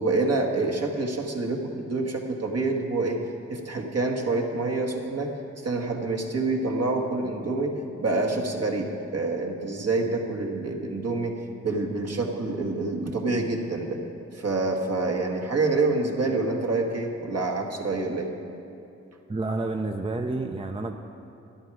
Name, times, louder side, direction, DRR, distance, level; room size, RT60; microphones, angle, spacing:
voice 1, 0.0-3.2 3.5-11.4 11.6-14.0 14.3-18.3, right 3 dB, 55° right, 1 dB, 1.7 m, -27 dB
voice 2, 19.3-21.0, right 2 dB, 20° right, 5 dB, 0.7 m, -29 dB
12.0 x 10.5 x 4.9 m, 2.6 s
supercardioid pair, 40°, 30 cm